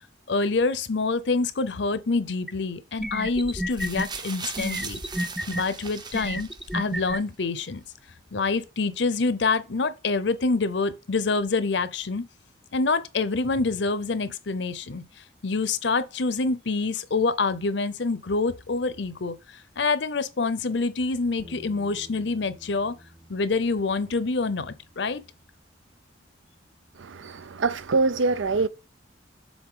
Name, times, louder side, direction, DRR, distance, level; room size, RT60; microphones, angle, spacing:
voice 1, 0.3-5.0 5.5-7.8 8.3-12.2 12.7-15.0 15.4-22.9 23.3-25.2, left 3 dB, 65° left, 0.7 m, -26 dB
sound 1, 2.5-2.6 3.0-4.1 4.6-5.6 6.1-7.2, equal, ahead, 0.3 m, -30 dB
sound 2, 3.7-7.0 7.8-7.9, right 5 dB, 20° right, 0.7 m, -38 dB
Bass guitar, 21.4-27.6, equal, 40° right, 1.2 m, -53 dB
voice 2, 27.0-28.7, right 3 dB, 85° right, 0.6 m, -24 dB
7.2 x 4.0 x 3.8 m
head